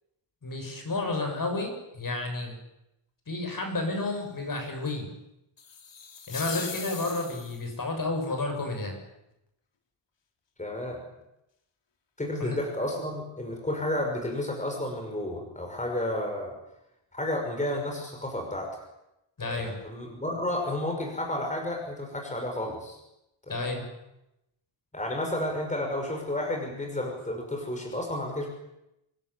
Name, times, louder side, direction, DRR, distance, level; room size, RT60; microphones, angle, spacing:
voice 1, 0.4-2.5 3.3-5.1 6.3-8.9 12.4-12.6 19.4-19.8 23.5-23.9, left 2 dB, 40° left, 4 dB, 7.2 m, -31 dB
sound 1, 5.6-7.8, left 6 dB, 60° left, 3.4 m, -39 dB
voice 2, 10.6-11.0 12.2-16.5 17.1-18.8 19.4-23.0 23.5-23.9 24.9-28.5, left 1 dB, 15° left, 2 dB, 5.7 m, -32 dB
26.0 x 21.0 x 9.9 m, 0.87 s
wide cardioid pair, 160°, 50 cm